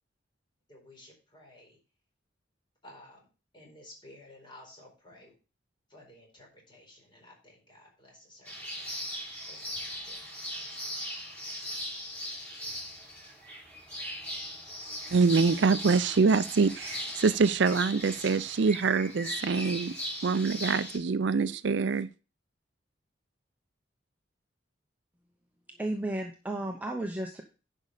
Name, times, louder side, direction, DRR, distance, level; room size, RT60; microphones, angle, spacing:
voice 1, 0.7-1.8 2.8-3.3 3.5-5.4 5.9-9.0 9.4-10.2, left 1 dB, 25° left, -1 dB, 4.4 m, -54 dB
sound 1, 8.5-21.0, equal, 5° left, 5.0 m, -39 dB
voice 2, 15.1-19.9 20.2-22.1, right 4 dB, 65° right, 15 dB, 0.5 m, -25 dB
voice 3, 25.7-27.4, right 1 dB, 10° right, 2 dB, 0.8 m, -33 dB
10.5 x 5.4 x 4.9 m, 0.33 s
head